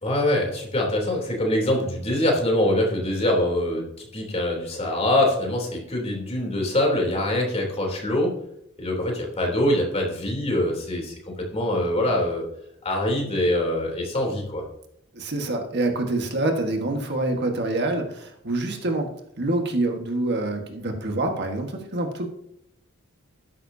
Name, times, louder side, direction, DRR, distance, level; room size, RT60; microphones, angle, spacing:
voice 1, 0.0-3.9 4.1-8.4 8.8-12.4 12.8-14.6, left 1 dB, 30° left, 0 dB, 3.3 m, -24 dB
voice 2, 15.1-19.1 19.4-22.3, right 2 dB, 50° right, 3 dB, 1.6 m, -26 dB
13.5 x 11.5 x 2.8 m, 0.75 s
head